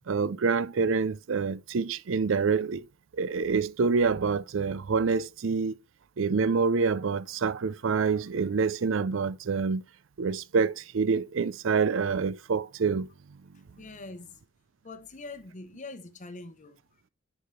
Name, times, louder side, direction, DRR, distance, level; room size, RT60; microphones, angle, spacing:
voice 1, 0.1-2.9 3.2-5.8 6.2-9.8 10.2-13.1, right 5 dB, 65° right, 0.5 m, -27 dB
voice 2, 13.8-14.4 14.8-16.8, left 3 dB, 40° left, 0.9 m, -43 dB
10.5 x 4.7 x 3.2 m
head